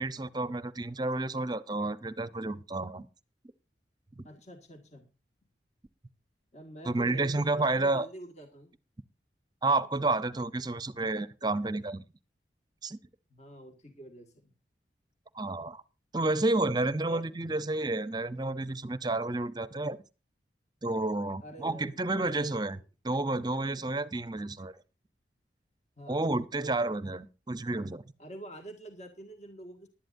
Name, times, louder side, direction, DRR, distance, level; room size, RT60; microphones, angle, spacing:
voice 1, 0.0-3.1 6.9-8.1 9.6-12.0 12.8-13.0 15.3-15.8 16.1-20.0 20.8-22.8 23.0-24.7 26.1-28.0, right 2 dB, 25° right, 14 dB, 0.7 m, -30 dB
voice 2, 4.2-5.1 6.5-8.7 13.3-14.5 16.9-17.2 21.4-22.8 26.0-26.3 28.2-29.9, right 1 dB, 40° left, 4 dB, 1.9 m, -47 dB
20.0 x 11.5 x 2.6 m, 0.30 s
head